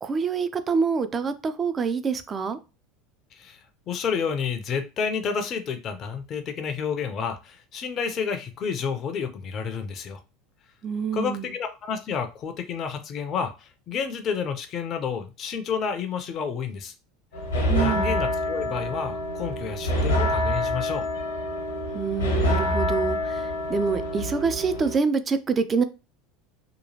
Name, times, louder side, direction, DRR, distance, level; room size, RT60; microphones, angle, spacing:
voice 1, 0.0-2.6 10.8-11.5 17.7-18.1 21.9-25.8, right 5 dB, 25° right, 0.4 m, -26 dB
voice 2, 3.3-10.2 11.1-16.9 17.8-21.1, left 6 dB, 40° left, 0.5 m, -30 dB
sound 1, 17.3-25.0, left 1 dB, 80° left, 0.9 m, -26 dB
2.8 x 2.3 x 2.8 m
figure-of-eight pair, 75°, 0 cm